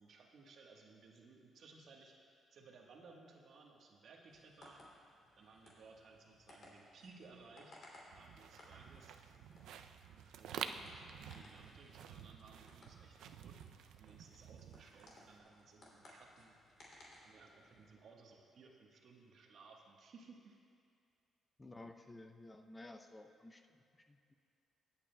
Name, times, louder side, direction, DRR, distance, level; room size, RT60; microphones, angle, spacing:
voice 1, 0.0-4.8 5.4-7.8 8.1-9.2 10.4-13.6 14.0-16.6 17.2-20.6, right 4 dB, 65° right, 0 dB, 1.2 m, -60 dB
sound 1, 4.3-17.9, left 1 dB, 55° left, 2.7 m, -63 dB
sound 2, 8.1-15.4, right 8 dB, 85° right, 0.4 m, -50 dB
voice 2, 21.6-24.3, left 2 dB, 20° left, 5 dB, 0.6 m, -54 dB
22.0 x 8.7 x 2.2 m, 2.3 s
cardioid pair, 90°, 0 cm